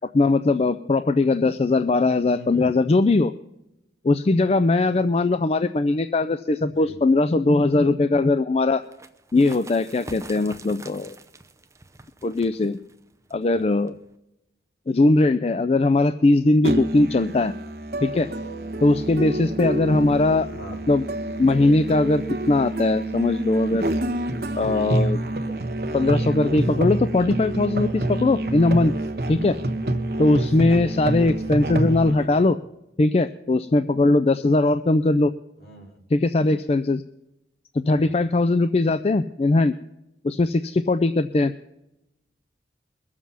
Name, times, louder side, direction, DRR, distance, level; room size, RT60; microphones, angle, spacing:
voice 1, 0.1-3.3 4.0-8.8 9.3-11.2 12.2-12.8 13.3-14.0 14.9-17.5 18.0-18.3 18.8-20.5 20.9-21.1 21.4-23.9 24.6-25.2 25.9-28.9 29.3-29.6 30.2-32.5 33.0-35.3 36.1-37.0 37.9-39.7 40.2-41.5, left 2 dB, 35° left, 11 dB, 0.4 m, -20 dB
voice 2, 2.3-2.7 6.7-7.0 13.5-13.6 20.5-20.8 32.1-32.5 35.6-36.1 37.9-38.2, equal, 60° left, 1 dB, 3.0 m, -43 dB
sound 1, 8.8-14.2, right 2 dB, 15° right, 0.7 m, -45 dB
Musical instrument, 16.6-32.1, right 1 dB, 60° right, 1.2 m, -27 dB
22.0 x 7.4 x 5.7 m, 0.91 s
head